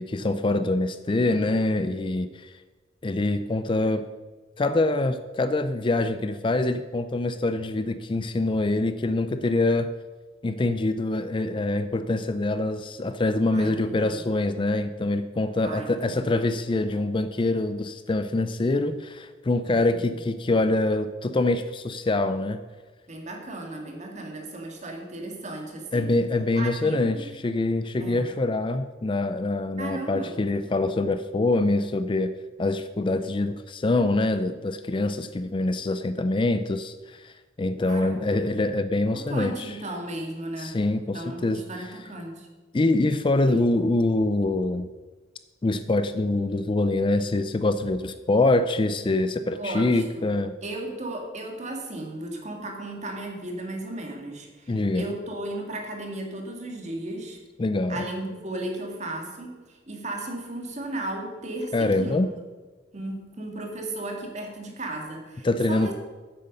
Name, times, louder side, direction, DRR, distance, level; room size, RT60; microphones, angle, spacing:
voice 1, 0.0-2.5 3.0-4.0 4.6-9.9 10.4-22.6 25.9-32.3 32.6-39.7 40.6-41.9 42.7-44.9 45.6-50.5 54.7-55.1 57.6-58.0 61.7-62.3 65.4-65.9, left 2 dB, 25° left, 11 dB, 0.4 m, -25 dB
voice 2, 1.1-1.5 13.5-14.2 15.6-16.2 19.7-20.2 23.1-26.1 26.5-27.3 28.0-28.3 29.8-30.3 37.8-38.3 39.1-40.8 41.1-42.5 43.5-43.6 49.5-50.3 50.6-57.4 57.9-62.2 62.9-65.9, right 1 dB, 40° right, 2 dB, 2.0 m, -35 dB
9.2 x 8.1 x 6.6 m, 1.3 s
head